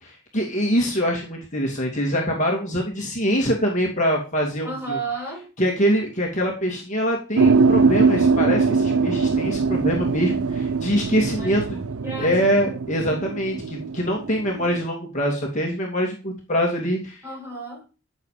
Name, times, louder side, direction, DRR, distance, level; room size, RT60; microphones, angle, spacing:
voice 1, 0.0-5.0 5.6-11.8 12.2-17.2, equal, 35° left, -1 dB, 2.7 m, -24 dB
voice 2, 4.6-5.5 11.1-11.6 12.0-12.5 17.2-17.8, right 3 dB, 10° right, -3 dB, 7.3 m, -32 dB
sound 1, 7.4-14.8, right 4 dB, 90° right, 0.6 m, -22 dB
15.0 x 7.3 x 5.1 m, 0.34 s
head